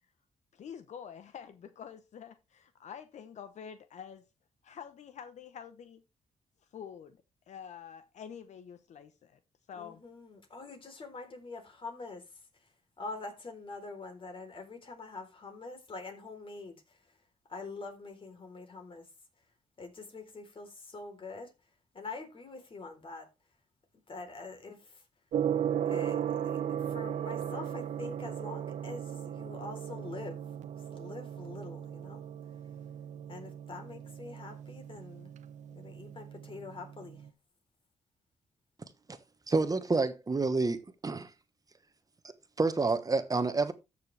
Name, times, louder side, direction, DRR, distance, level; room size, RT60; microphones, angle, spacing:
voice 1, 0.5-4.3 4.6-6.0 6.7-9.4 9.7-10.0, left 8 dB, 70° left, 0.9 m, -47 dB
voice 2, 9.7-12.2 13.0-17.0 17.5-19.1 19.8-21.5 21.9-23.3 24.1-25.0 25.9-30.4 30.9-32.2 33.3-35.3 35.7-37.2, left 3 dB, 45° left, 3.8 m, -45 dB
Gong, 25.3-37.3, right 9 dB, 80° right, 1.1 m, -37 dB
voice 3, 39.5-41.3 42.6-43.7, right 3 dB, 30° right, 1.2 m, -28 dB
13.5 x 6.8 x 3.4 m
cardioid pair, 75°, 12 cm